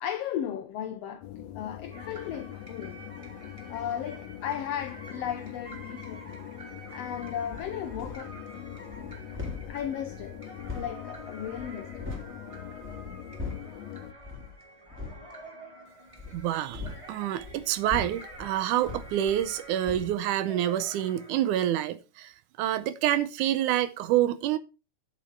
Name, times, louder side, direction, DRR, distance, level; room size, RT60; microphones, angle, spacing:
voice 1, 0.0-1.2 1.5-3.0 3.7-6.2 6.9-8.3 9.7-10.3 10.7-11.9, left 9 dB, 85° left, 1.4 m, -35 dB
sound 1, 1.2-14.1, left 11 dB, 70° left, 1.8 m, -43 dB
sound 2, 1.9-21.5, right 1 dB, 20° right, 0.8 m, -48 dB
sound 3, 7.4-8.4 8.7-12.4 12.7-13.8 14.2-14.6 14.9-15.3 16.1-19.6 19.9-20.2, left 3 dB, 5° right, 2.4 m, -40 dB
voice 2, 16.3-22.3 22.6-24.6, right 12 dB, 80° right, 2.0 m, -27 dB
8.5 x 7.9 x 4.5 m
omnidirectional pair, 3.7 m